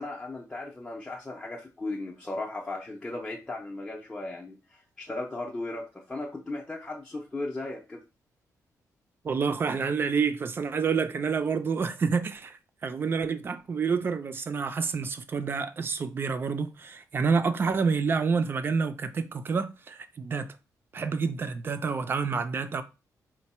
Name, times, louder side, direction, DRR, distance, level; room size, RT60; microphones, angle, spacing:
voice 1, 0.0-8.0, left 2 dB, 15° left, 0.6 m, -36 dB
voice 2, 9.2-20.5 20.9-22.8, right 5 dB, 35° right, 0.4 m, -28 dB
4.4 x 2.2 x 4.1 m
wide cardioid pair, 150°, 6 cm